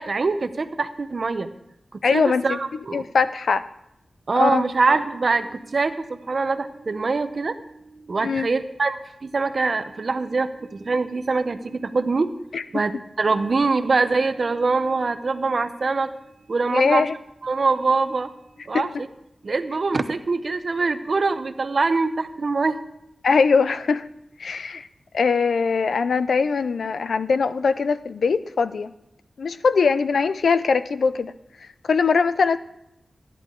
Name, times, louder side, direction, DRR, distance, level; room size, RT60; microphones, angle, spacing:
voice 1, 0.0-1.5 1.9-3.1 4.3-12.4 12.7-16.1 16.5-17.1 17.4-18.3 18.7-19.1 19.4-22.8, right 3 dB, 55° right, 10 dB, 0.7 m, -24 dB
voice 2, 2.0-2.6 2.9-3.6 4.3-4.6 8.2-8.5 12.5-12.8 16.7-17.1 18.7-18.8 23.2-24.1 24.4-24.9 25.1-28.9 29.4-31.3 31.9-32.6, left 5 dB, 90° left, 14 dB, 0.4 m, -21 dB
13.0 x 10.5 x 3.7 m, 0.82 s
wide cardioid pair, 90°, 0 cm